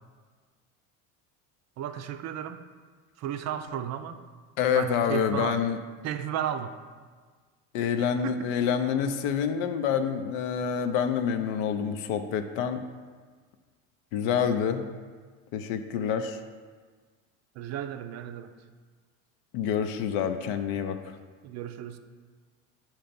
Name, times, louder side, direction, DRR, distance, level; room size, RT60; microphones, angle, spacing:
voice 1, 1.8-2.6 3.2-4.2 4.7-5.6 6.0-6.7 8.2-8.5 17.6-18.5 21.4-22.0, right 10 dB, 45° right, 9 dB, 0.4 m, -34 dB
voice 2, 4.6-5.8 7.7-12.8 14.1-14.9 15.5-16.4 19.5-21.0, left 7 dB, 75° left, 8 dB, 0.5 m, -27 dB
6.4 x 3.0 x 5.1 m, 1.5 s
supercardioid pair, 105°, 37 cm